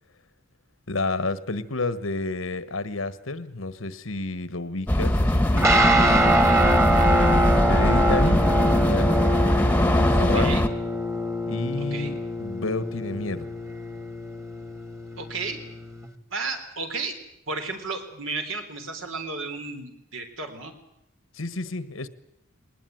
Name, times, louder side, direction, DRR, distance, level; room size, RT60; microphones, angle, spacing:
voice 1, 0.9-8.4 8.8-9.2 9.6-10.6 11.5-13.5 21.3-22.1, left 2 dB, 80° left, 14 dB, 1.4 m, -31 dB
sound 1, 4.9-10.7, left 1 dB, 10° left, 1.2 m, -21 dB
sound 2, 5.6-16.1, right 1 dB, 15° right, 1.6 m, -24 dB
voice 2, 10.3-10.6 11.8-12.1 15.2-15.6 16.3-17.1 17.5-20.7, right 3 dB, 80° right, 6 dB, 3.7 m, -33 dB
20.5 x 19.5 x 9.3 m, 0.79 s
head